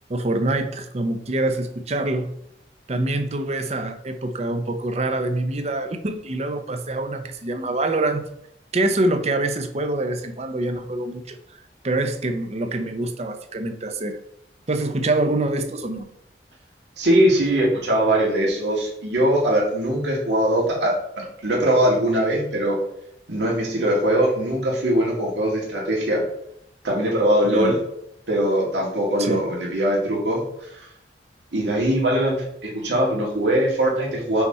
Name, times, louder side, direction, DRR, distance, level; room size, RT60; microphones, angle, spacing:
voice 1, 0.1-2.3 2.9-8.3 8.7-11.4 11.8-14.2 14.7-16.1 27.4-27.8 29.2-29.5, right 2 dB, 40° right, 7 dB, 0.6 m, -25 dB
voice 2, 17.0-22.8 23.3-26.2 26.8-27.8 28.3-30.9 31.5-34.4, right 1 dB, 85° right, -3 dB, 2.0 m, -21 dB
5.8 x 4.1 x 4.3 m, 0.75 s
head